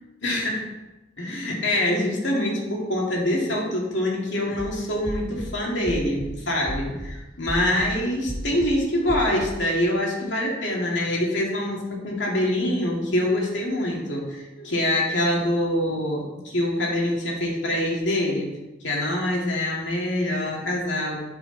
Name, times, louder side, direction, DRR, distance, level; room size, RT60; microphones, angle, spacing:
voice 1, 0.2-0.7 1.2-18.5 18.8-21.2, left 1 dB, 70° left, -2 dB, 2.4 m, -25 dB
sound 1, 4.5-4.7 5.1-5.5 5.9-6.3 6.7-7.1 7.5-7.9 8.3-8.7 9.1-9.5, equal, 20° right, 1.0 m, -33 dB
11.5 x 5.1 x 4.1 m, 1.0 s
head